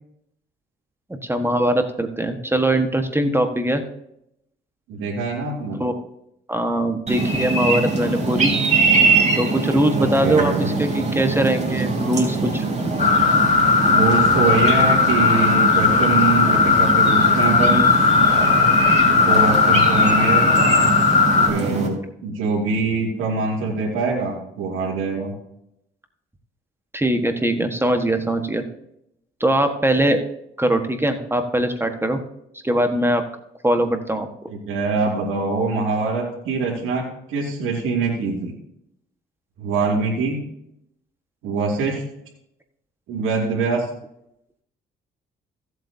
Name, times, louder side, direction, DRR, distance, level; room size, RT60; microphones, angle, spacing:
voice 1, 1.2-3.8 5.7-5.9 6.5-8.5 9.4-12.6 26.9-28.6 29.4-30.2 30.6-32.2 32.6-33.2 33.6-34.3, right 1 dB, 10° right, 6 dB, 1.5 m, -21 dB
voice 2, 4.9-5.8 9.9-10.7 13.9-17.9 19.2-20.5 21.5-25.3 34.5-38.5 39.6-40.4 41.4-42.0 43.1-43.9, right 3 dB, 85° right, -3 dB, 2.6 m, -23 dB
sound 1, 7.1-21.9, right 3 dB, 35° right, 3.4 m, -23 dB
sound 2, 13.0-21.5, left 5 dB, 40° left, 2.7 m, -17 dB
16.5 x 8.0 x 2.8 m, 0.78 s
supercardioid pair, 65°, 20 cm